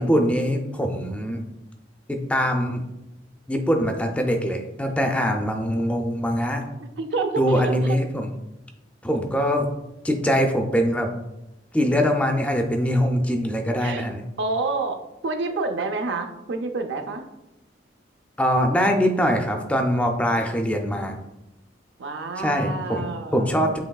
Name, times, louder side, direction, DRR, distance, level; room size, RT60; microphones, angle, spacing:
voice 1, 0.0-1.4 2.1-2.8 3.5-6.6 7.4-8.3 9.0-9.7 10.0-11.1 11.7-14.2 18.4-21.2 22.4-23.8, equal, 5° left, 3 dB, 0.4 m, -23 dB
voice 2, 7.0-8.0 13.8-14.1 14.4-15.0 15.2-17.2 22.0-23.6, right 3 dB, 75° right, 6 dB, 0.5 m, -28 dB
7.7 x 3.0 x 2.3 m, 0.92 s
head